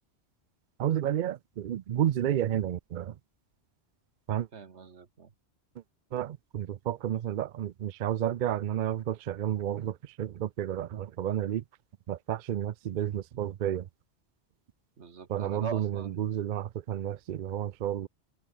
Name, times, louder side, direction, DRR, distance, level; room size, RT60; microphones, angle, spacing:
voice 1, 0.8-3.2 4.3-4.5 6.1-11.6 12.1-13.9 15.3-18.1, right 11 dB, 55° right, 0.6 m, -31 dB
voice 2, 4.5-5.3 15.0-16.4, right 5 dB, 85° right, 1.9 m, -42 dB
omnidirectional pair, 1.1 m